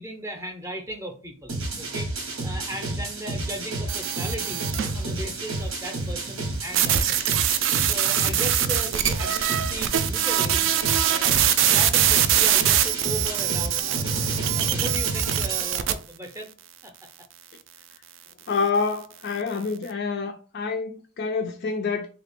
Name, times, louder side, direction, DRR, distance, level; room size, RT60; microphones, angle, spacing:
voice 1, 0.0-4.7 4.9-7.3 7.9-10.7 11.1-14.1 14.5-16.5 16.8-17.1, equal, 15° right, 0.6 m, -37 dB
sound 1, 1.5-15.7, right 2 dB, 90° right, 1.1 m, -31 dB
sound 2, 3.9-5.0 6.7-15.9, right 11 dB, 60° right, 0.3 m, -23 dB
voice 2, 18.5-22.1, left 4 dB, 45° left, 0.3 m, -27 dB
3.2 x 2.4 x 3.4 m
head